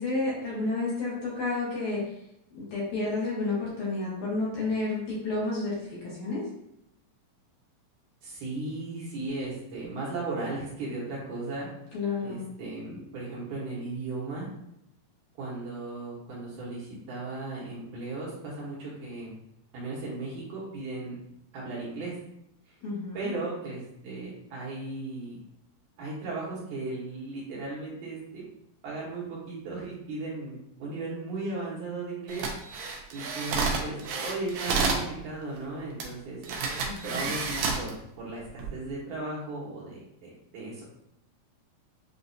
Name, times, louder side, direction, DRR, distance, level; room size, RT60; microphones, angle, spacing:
voice 1, 0.0-2.0 2.5-6.4 11.9-12.4 22.8-23.3 36.8-37.3, left 3 dB, 65° left, -6 dB, 2.2 m, -31 dB
voice 2, 8.2-11.7 12.2-14.5 15.4-19.3 19.7-21.2 21.5-22.1 22.7-22.8 23.1-25.4 26.0-28.4 28.8-32.5 33.1-40.8, right 2 dB, 65° right, -5 dB, 2.4 m, -36 dB
sound 1, 32.3-35.1 36.0-36.1 36.4-37.9 38.4-38.7, right 4 dB, 85° right, 1.6 m, -30 dB
7.1 x 2.6 x 2.7 m, 0.79 s
omnidirectional pair, 4.2 m